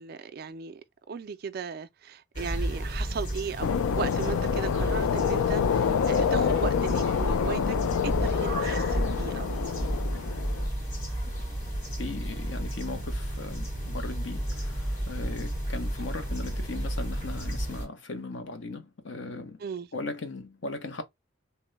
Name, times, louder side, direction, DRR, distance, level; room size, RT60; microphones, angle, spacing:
voice 1, 0.0-7.8 8.0-9.6 19.6-19.9, right 5 dB, 50° right, 0.3 m, -37 dB
sound 1, 2.3-17.9, right 1 dB, 35° left, 1.8 m, -32 dB
sound 2, 3.6-10.7, left 7 dB, 90° left, 0.3 m, -27 dB
voice 2, 12.0-19.6 19.9-21.0, left 3 dB, 60° left, 0.7 m, -38 dB
2.9 x 2.0 x 3.1 m
head